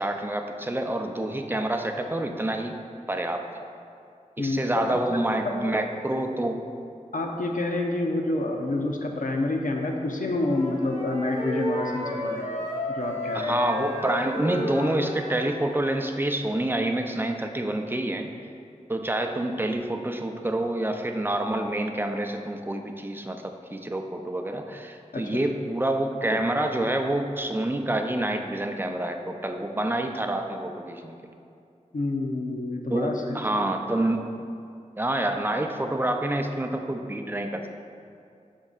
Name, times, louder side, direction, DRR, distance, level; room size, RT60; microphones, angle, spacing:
voice 1, 0.0-2.8 3.1-3.5 4.4-6.6 13.3-18.3 18.9-31.3 32.9-34.3 35.0-37.6, right 1 dB, 15° right, 4 dB, 0.5 m, -27 dB
voice 2, 4.4-5.7 7.1-12.5 12.9-13.5 25.1-25.4 31.9-33.7, left 2 dB, 85° left, 2 dB, 0.7 m, -28 dB
Wind instrument woodwind instrument, 10.4-15.6, left 1 dB, 55° left, 1.5 m, -32 dB
11.5 x 5.4 x 2.4 m, 2.4 s
wide cardioid pair, 75°, 13 cm